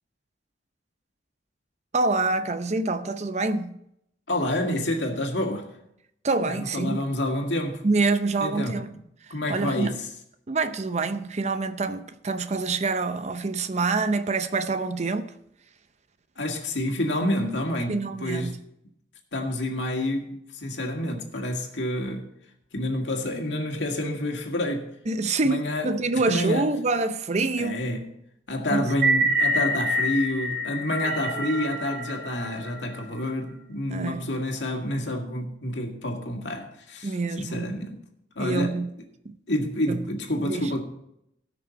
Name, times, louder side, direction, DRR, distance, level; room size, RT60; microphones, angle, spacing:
voice 1, 1.9-3.8 6.2-7.0 7.8-8.9 9.5-10.0 10.5-15.3 17.9-18.6 25.1-27.9 28.7-29.0 33.9-34.3 37.0-37.8 38.4-38.9 39.2-39.4 39.9-40.1 40.4-40.7, right 3 dB, 40° right, 0.6 m, -26 dB
voice 2, 4.3-5.7 6.5-7.8 8.4-8.8 9.3-10.1 16.4-18.5 19.3-22.3 22.7-24.9 25.4-25.9 26.3-26.7 27.6-28.1 28.5-37.1 37.4-38.0 38.4-38.8 39.5-40.8, left 1 dB, 80° left, 2.0 m, -28 dB
sound 1, 28.9-33.2, right 1 dB, 55° right, 4.1 m, -26 dB
18.5 x 6.1 x 4.1 m
head